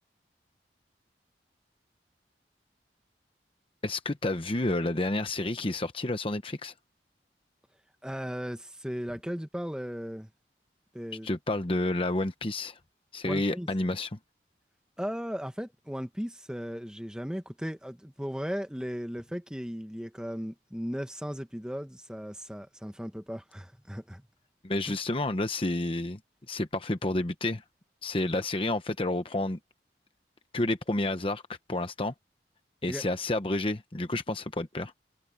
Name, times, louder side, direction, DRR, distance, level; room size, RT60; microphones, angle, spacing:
voice 1, 3.8-6.7 11.2-12.8 13.1-14.2 24.6-26.2 26.5-27.6 28.0-29.6 30.5-31.4 31.7-32.1 32.8-34.9, left 2 dB, 30° left, 1.0 m, -30 dB
voice 2, 8.0-10.3 10.9-11.3 13.2-13.7 15.0-24.3 24.9-25.0 32.9-33.0, equal, 5° right, 1.6 m, -36 dB
head